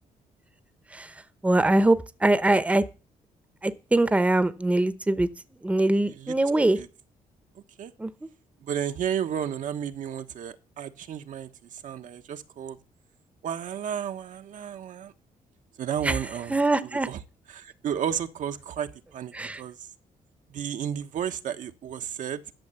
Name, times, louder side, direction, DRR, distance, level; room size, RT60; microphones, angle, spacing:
voice 1, 1.4-2.8 3.6-5.3 5.6-6.8 8.0-8.1 16.0-16.2 16.5-17.1 19.3-19.6, right 2 dB, 10° right, 0.9 m, -22 dB
voice 2, 7.5-7.9 8.6-12.8 13.4-15.1 15.8-16.6 16.9-17.2 17.5-19.9 20.5-22.4, right 9 dB, 70° right, 1.2 m, -33 dB
12.0 x 6.7 x 7.9 m
cardioid pair, 120°, 14 cm